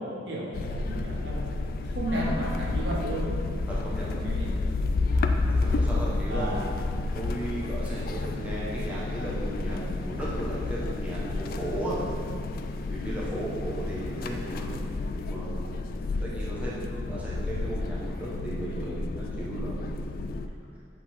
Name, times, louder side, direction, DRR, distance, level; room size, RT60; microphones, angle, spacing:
voice 1, 0.0-1.5 1.8-3.4 4.2-4.6 6.3-6.7, right 1 dB, 70° right, -2 dB, 1.1 m, -33 dB
sound 1, 0.5-20.5, left 2 dB, 50° left, 0.3 m, -30 dB
voice 2, 3.7-4.2 5.4-6.5 7.1-12.0 12.9-14.7 15.2-15.7 16.2-19.8, right 1 dB, 5° right, -8 dB, 1.1 m, -36 dB
7.4 x 4.1 x 4.3 m, 2.2 s
head